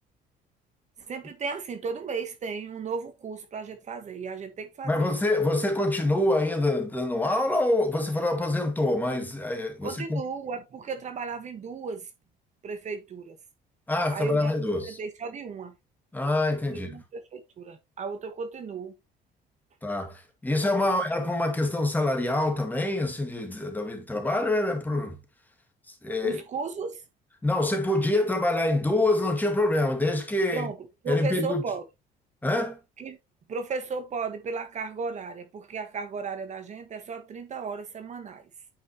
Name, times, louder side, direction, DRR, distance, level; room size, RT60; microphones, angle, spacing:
voice 1, 1.0-5.1 9.8-12.1 12.6-13.4 14.1-15.7 16.7-18.9 20.8-21.0 26.2-27.0 30.5-31.8 33.0-33.2 33.5-38.5, right 5 dB, 45° right, 1.3 m, -35 dB
voice 2, 4.8-10.2 13.9-15.0 16.1-17.0 19.8-25.2 26.0-26.4 27.4-30.7 31.1-31.6 32.4-32.8, left 2 dB, 10° left, 2.0 m, -26 dB
9.0 x 5.2 x 2.9 m
cardioid pair, 110°, 17 cm